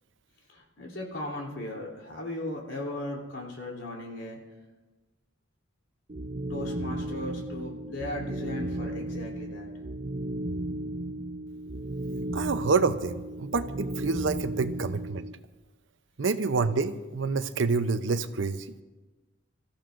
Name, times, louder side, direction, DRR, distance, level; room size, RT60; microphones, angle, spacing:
voice 1, 0.5-4.4 6.5-9.7, left 1 dB, 80° left, -1 dB, 3.3 m, -37 dB
sound 1, 6.1-15.3, right 1 dB, 40° right, 0.6 m, -35 dB
voice 2, 12.3-15.3 16.2-18.7, right 4 dB, 80° right, 11 dB, 0.7 m, -27 dB
25.5 x 14.5 x 2.6 m, 1.2 s
head